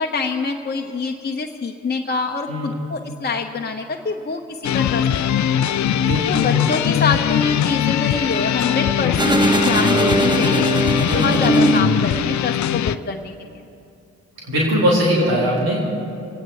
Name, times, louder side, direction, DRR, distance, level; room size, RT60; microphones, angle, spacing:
voice 1, 0.0-5.6 6.3-13.6, left 4 dB, 25° left, 2 dB, 0.9 m, -26 dB
voice 2, 2.5-2.8 5.9-6.6 11.1-11.4 14.4-15.8, equal, 65° right, -5 dB, 3.7 m, -21 dB
sound 1, 4.6-13.0, left 10 dB, 50° left, 0.5 m, -20 dB
sound 2, 9.2-12.5, right 2 dB, 10° right, 1.0 m, -20 dB
23.5 x 9.2 x 4.8 m, 2.6 s
hypercardioid pair, 45°, 37 cm